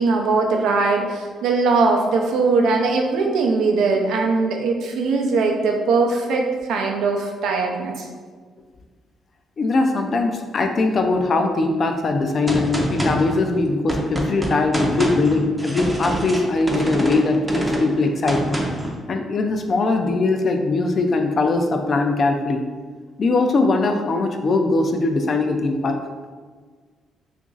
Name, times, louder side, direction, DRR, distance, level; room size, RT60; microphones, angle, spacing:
voice 1, 0.0-6.4 6.7-8.1, right 3 dB, 80° right, 2 dB, 0.5 m, -20 dB
voice 2, 9.6-18.5 19.1-22.6 23.2-26.0, left 3 dB, 45° left, 5 dB, 0.4 m, -21 dB
Gunshot gunfire, 12.5-19.0, right 1 dB, 10° right, 0.5 m, -26 dB
2.9 x 2.5 x 3.8 m, 1.5 s
cardioid pair, 90°, 0 cm